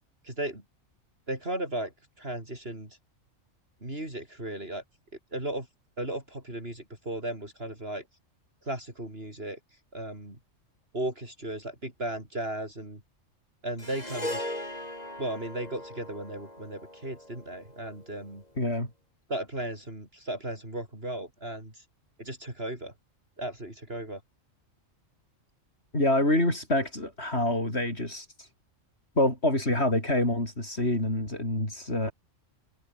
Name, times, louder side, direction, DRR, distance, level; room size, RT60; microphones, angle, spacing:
voice 1, 0.2-0.6 1.3-1.9 2.2-3.0 3.8-4.8 5.3-5.7 6.0-8.0 8.6-9.6 9.9-10.4 10.9-13.0 13.6-14.4 15.2-18.4 19.3-21.8 22.2-22.9 23.4-24.2, right 1 dB, 50° right, 6.8 m, -35 dB
Harp, 13.8-18.2, left 1 dB, 30° left, 6.4 m, -39 dB
voice 2, 18.6-18.9 25.9-28.5 29.2-32.1, left 1 dB, 55° left, 8.4 m, -26 dB
omnidirectional pair, 1.4 m